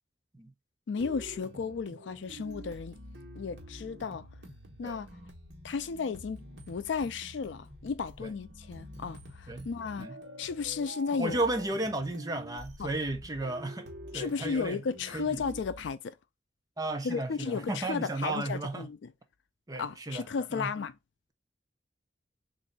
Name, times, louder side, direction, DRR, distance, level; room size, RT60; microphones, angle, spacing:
voice 1, 0.9-2.9 3.4-4.3 4.8-5.1 5.6-11.4 12.8-12.9 14.1-16.1 17.0-19.1 19.8-20.9, left 5 dB, 75° left, 0.4 m, -34 dB
sound 1, 1.0-15.9, equal, 65° right, 1.2 m, -47 dB
voice 2, 11.2-13.9 14.1-14.8 15.1-15.4 16.8-18.9 19.7-20.3 20.5-20.7, right 2 dB, 20° right, 0.6 m, -34 dB
3.2 x 2.6 x 3.9 m
head